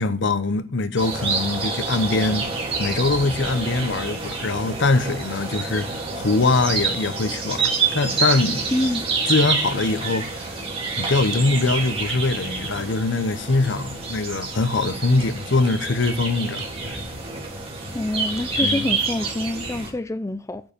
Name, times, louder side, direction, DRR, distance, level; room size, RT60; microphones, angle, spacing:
voice 1, 0.0-2.5 2.8-8.7 9.3-10.4 11.0-17.0 18.6-18.9, left 3 dB, 65° left, 0.9 m, -23 dB
sound 1, 1.0-19.9, right 4 dB, 30° right, 3.6 m, -28 dB
voice 2, 8.7-9.1 17.9-20.6, left 1 dB, 15° left, 0.4 m, -26 dB
8.9 x 8.0 x 5.2 m
head